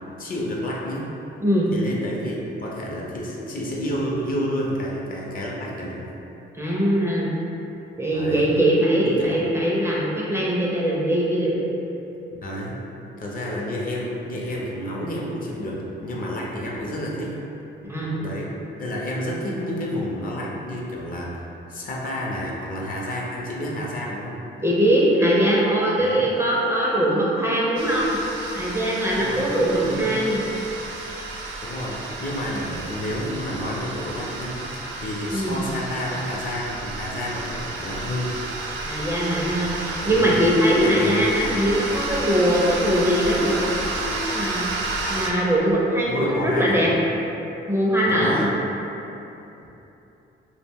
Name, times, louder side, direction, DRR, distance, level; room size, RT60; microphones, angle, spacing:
voice 1, 0.2-1.1 1.7-6.0 8.1-8.5 9.0-9.4 12.4-12.7 13.2-17.3 18.2-18.5 18.8-21.3 21.7-24.3 26.0-26.3 29.1-29.4 29.8-30.2 31.6-34.5 34.9-38.4 40.1-40.4 40.8-41.3 46.0-47.0 48.0-48.5, equal, 45° left, -3 dB, 0.5 m, -30 dB
voice 2, 6.5-7.3 8.0-11.6 17.8-18.1 24.6-28.2 28.5-30.4 35.3-35.6 38.9-43.6 44.0-46.9 47.7-48.5, equal, 10° right, -5 dB, 0.4 m, -21 dB
sound 1, 27.8-45.3, right 2 dB, 75° right, 0.4 m, -31 dB
2.3 x 2.1 x 3.4 m, 3.0 s
cardioid pair, 90°, 20 cm